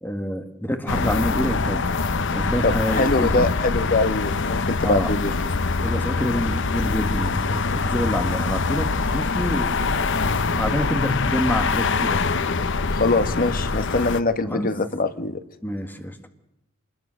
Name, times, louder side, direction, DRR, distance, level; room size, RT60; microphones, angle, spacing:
voice 1, 0.0-1.9 2.3-3.5 4.8-5.1 5.8-10.1 10.5-12.2 14.5-14.7 15.6-16.2, equal, 10° left, 7 dB, 1.9 m, -27 dB
sound 1, 0.9-14.2, left 4 dB, 65° left, 0.9 m, -24 dB
voice 2, 2.6-5.5 12.9-15.4, left 2 dB, 45° left, 11 dB, 1.3 m, -23 dB
25.5 x 21.0 x 6.5 m, 0.85 s
head